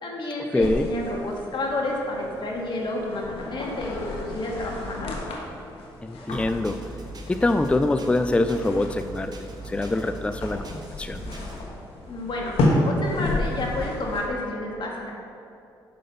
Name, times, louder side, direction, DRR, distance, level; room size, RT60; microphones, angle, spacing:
voice 1, 0.0-5.1 12.1-15.1, left 2 dB, 55° left, -1 dB, 1.7 m, -30 dB
voice 2, 0.5-0.9 6.0-6.8 7.3-9.3 9.7-10.7 11.0-11.2, left 2 dB, 10° left, 9 dB, 0.4 m, -24 dB
sound 1, 0.6-14.3, left 1 dB, 75° left, 1.2 m, -32 dB
sound 2, 6.3-11.6, right 2 dB, 45° right, 1.0 m, -39 dB
6.8 x 5.5 x 5.5 m, 2.5 s
supercardioid pair, 60°, 10 cm